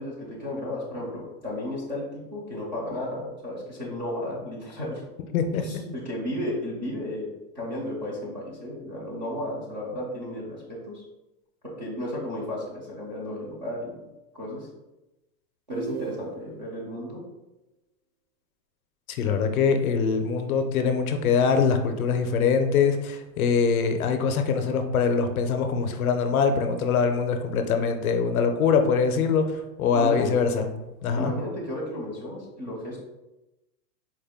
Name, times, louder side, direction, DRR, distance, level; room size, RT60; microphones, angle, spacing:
voice 1, 0.0-5.0 5.6-11.0 11.8-14.0 14.3-14.7 15.7-17.2 29.9-30.5 31.1-33.0, left 1 dB, 30° right, -6 dB, 0.4 m, -33 dB
voice 2, 5.3-5.8 19.1-29.4 29.8-30.6 31.0-31.3, left 5 dB, 60° left, 6 dB, 0.5 m, -23 dB
sound 1, 15.7-16.7, right 5 dB, 75° right, 0.9 m, -35 dB
4.4 x 2.1 x 3.4 m, 0.99 s
supercardioid pair, 175°, 49 cm